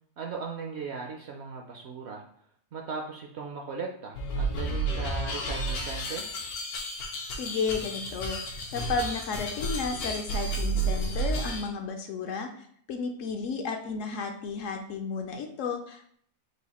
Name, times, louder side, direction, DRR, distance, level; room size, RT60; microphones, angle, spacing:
voice 1, 0.2-2.2 2.7-6.2, right 4 dB, 65° right, 1 dB, 0.7 m, -38 dB
sound 1, 4.1-11.7, right 2 dB, 90° left, 1.3 m, -31 dB
voice 2, 7.3-16.1, left 5 dB, 70° left, 5 dB, 0.8 m, -33 dB
4.8 x 2.5 x 4.1 m, 0.63 s
omnidirectional pair, 1.5 m